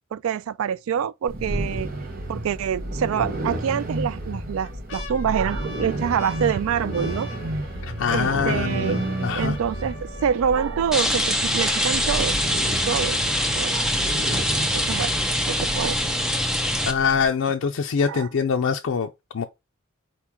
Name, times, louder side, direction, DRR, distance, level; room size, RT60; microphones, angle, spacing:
voice 1, 0.1-1.9 2.3-7.3 8.1-9.0 9.3-12.4 12.9-13.2 13.6-14.0 14.6-15.1 15.5-16.1 18.1-18.3, right 8 dB, 80° right, 0.3 m, -26 dB
sound 1, 1.3-17.3, right 1 dB, 45° right, 0.9 m, -31 dB
sound 2, 4.6-12.3 13.0-13.1 13.3-13.8 14.3-14.4, left 3 dB, 60° left, 1.0 m, -43 dB
voice 2, 7.8-9.6 16.9-19.4, left 6 dB, 75° left, 0.4 m, -24 dB
Rain, 10.9-16.9, equal, ahead, 0.7 m, -24 dB
4.5 x 3.0 x 3.5 m
head